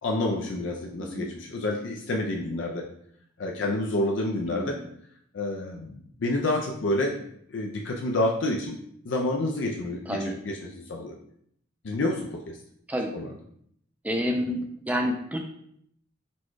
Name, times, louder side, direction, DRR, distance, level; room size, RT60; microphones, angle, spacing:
voice 1, 0.0-2.8 3.4-4.8 5.3-7.1 7.5-8.8 9.0-11.1 11.8-12.6 13.1-13.3, left 1 dB, 70° left, 0 dB, 0.5 m, -28 dB
voice 2, 4.5-4.9 10.1-10.3 12.9-13.1 14.0-15.4, equal, 10° right, 2 dB, 0.4 m, -29 dB
4.2 x 2.3 x 4.6 m, 0.68 s
head